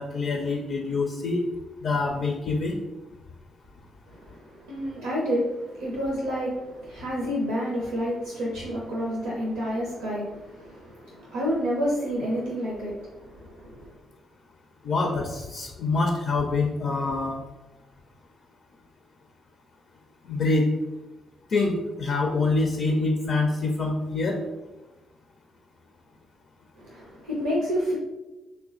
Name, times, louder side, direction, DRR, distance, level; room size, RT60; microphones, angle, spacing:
voice 1, 0.0-1.4 1.8-2.8 14.8-17.4 20.3-20.7 21.5-24.4, left 3 dB, 60° left, 2 dB, 0.4 m, -25 dB
voice 2, 4.1-13.9 26.8-28.0, equal, 85° right, -4 dB, 0.6 m, -29 dB
3.1 x 2.2 x 3.7 m, 1.1 s
hypercardioid pair, 45°, 0 cm